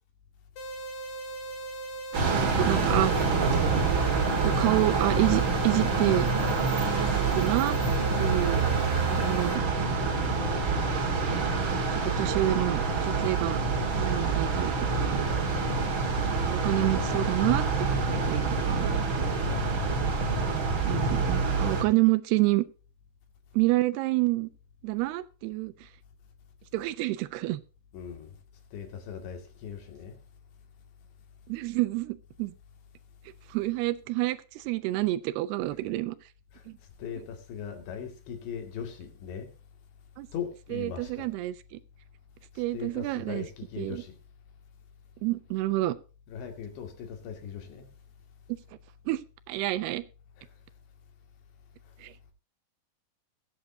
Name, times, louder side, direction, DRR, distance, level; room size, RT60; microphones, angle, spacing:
sound 1, 0.6-9.6, right 2 dB, 50° left, 2.7 m, -38 dB
sound 2, 2.1-21.8, right 4 dB, 45° right, 1.7 m, -26 dB
voice 1, 2.3-3.1 4.4-6.3 7.3-7.8 8.2-8.7 9.1-9.6 11.9-13.6 14.0-15.2 16.4-18.9 20.9-22.7 23.5-24.5 24.8-25.9 26.7-27.6 31.5-32.5 33.5-36.2 36.7-36.8 40.2-40.3 40.7-41.8 42.6-43.5 43.8-44.0 45.2-46.0 49.1-49.2 49.5-50.1 52.0-52.1, right 18 dB, 80° right, 2.5 m, -28 dB
voice 2, 8.5-9.0 12.0-12.5 15.2-15.8 19.5-19.8 27.9-28.3 28.7-30.2 36.5-36.6 37.0-39.5 40.3-41.3 42.7-44.2 46.3-47.9 50.4-50.5, left 7 dB, 80° left, 4.6 m, -40 dB
22.0 x 8.4 x 2.7 m
omnidirectional pair, 5.0 m